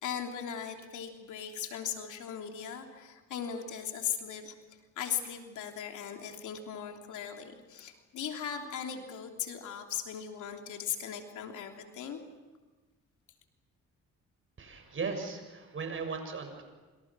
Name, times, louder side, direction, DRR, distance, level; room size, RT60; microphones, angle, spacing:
voice 1, 0.0-4.5 5.0-12.2, left 8 dB, 80° left, 3 dB, 3.3 m, -38 dB
voice 2, 14.6-16.6, right 4 dB, 45° right, 6 dB, 6.9 m, -37 dB
27.0 x 27.0 x 6.2 m, 1.3 s
cardioid pair, 90°, 30 cm